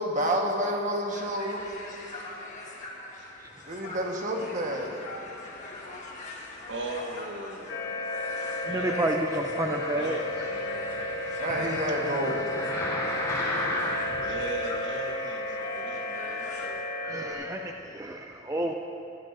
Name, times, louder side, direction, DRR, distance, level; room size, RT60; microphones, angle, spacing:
voice 1, 0.0-1.6 3.7-4.9 11.4-12.5, equal, 40° right, 0 dB, 1.4 m, -29 dB
sound 1, 1.1-16.7, left 2 dB, 40° left, 1.5 m, -41 dB
voice 2, 6.7-7.7 8.6-10.9 11.9-12.0 14.2-16.8, right 2 dB, 75° right, 3 dB, 1.1 m, -39 dB
sound 2, 7.7-17.3, left 2 dB, 65° left, 1.9 m, -33 dB
voice 3, 8.7-10.2 17.0-18.7, right 1 dB, 15° right, 2 dB, 0.5 m, -30 dB
sound 3, 9.6-14.2 14.8-14.9, left 1 dB, 20° left, 3.2 m, -35 dB
19.5 x 14.5 x 2.6 m, 2.8 s
head